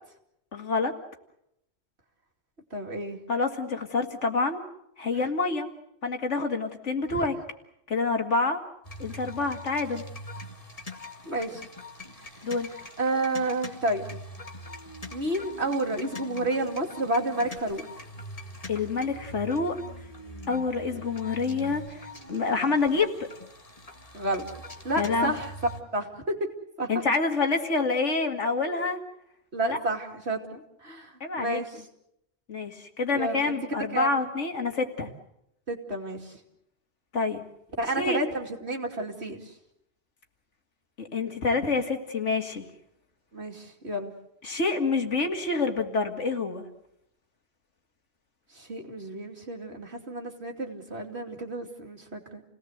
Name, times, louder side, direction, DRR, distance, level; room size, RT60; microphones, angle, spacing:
voice 1, 0.5-0.9 3.3-4.6 5.0-5.7 6.0-7.3 7.9-8.6 9.0-10.0 12.4-12.7 18.7-19.8 20.5-22.0 22.3-23.3 25.0-25.3 26.9-29.0 29.6-29.8 31.2-31.6 32.5-35.1 37.1-37.4 38.0-38.2 41.0-42.7 44.4-46.6, left 4 dB, 85° left, 5 dB, 2.5 m, -27 dB
voice 2, 2.7-3.2 7.1-7.3 11.3-11.7 13.0-14.0 15.1-17.8 24.1-24.5 24.8-25.5 25.9-26.5 26.8-26.9 28.6-28.7 29.5-31.8 33.1-34.2 35.7-36.4 37.8-39.5 43.3-44.1 48.5-52.4, right 1 dB, 65° right, 2 dB, 3.1 m, -30 dB
sound 1, 8.8-25.8, left 1 dB, 30° left, 2.2 m, -43 dB
28.5 x 18.0 x 8.0 m, 0.79 s
omnidirectional pair, 1.2 m